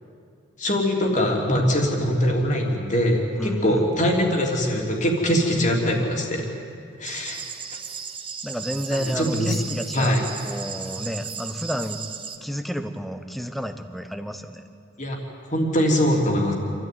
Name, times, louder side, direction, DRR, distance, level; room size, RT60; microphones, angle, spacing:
voice 1, 0.6-6.5 7.0-7.4 8.9-9.5 9.9-10.2 15.0-15.2 15.5-16.5, equal, 40° left, 1 dB, 3.3 m, -22 dB
voice 2, 3.4-3.9 8.4-12.0 12.4-14.6, equal, ahead, 8 dB, 1.0 m, -31 dB
sound 1, 7.0-12.4, right 7 dB, 25° right, 1.3 m, -36 dB
27.5 x 14.0 x 9.4 m, 2.4 s
head